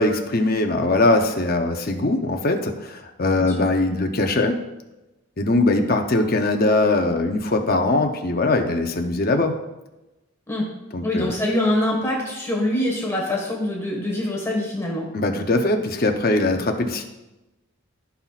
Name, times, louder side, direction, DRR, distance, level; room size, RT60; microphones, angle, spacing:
voice 1, 0.0-4.6 5.4-9.5 10.9-11.3 15.1-17.0, left 2 dB, 40° left, 4 dB, 0.7 m, -21 dB
voice 2, 11.0-15.0, left 1 dB, 10° left, -2 dB, 1.5 m, -24 dB
15.0 x 5.8 x 2.4 m, 1.0 s
head